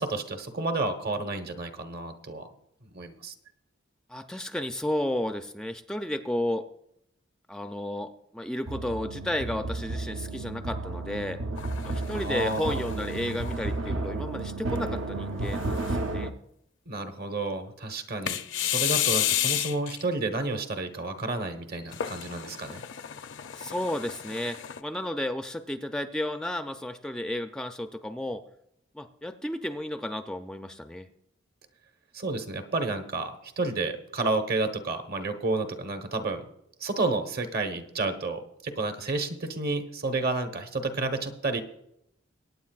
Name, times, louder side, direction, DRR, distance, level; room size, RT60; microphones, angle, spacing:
voice 1, 0.0-2.5 2.8-3.3 12.1-12.8 16.9-22.8 32.1-36.4 36.8-41.6, right 3 dB, 50° right, 7 dB, 1.1 m, -31 dB
voice 2, 4.1-6.7 7.5-11.4 11.8-16.3 23.5-28.4 28.9-31.1, left 1 dB, 5° left, 7 dB, 0.4 m, -33 dB
sound 1, 8.7-16.3, right 2 dB, 75° right, 0.7 m, -32 dB
sound 2, 11.6-14.1 14.7-14.8 15.5-16.2 18.3-20.0 21.9-24.8, left 11 dB, 65° left, 0.5 m, -32 dB
22.5 x 9.2 x 2.4 m, 0.77 s
head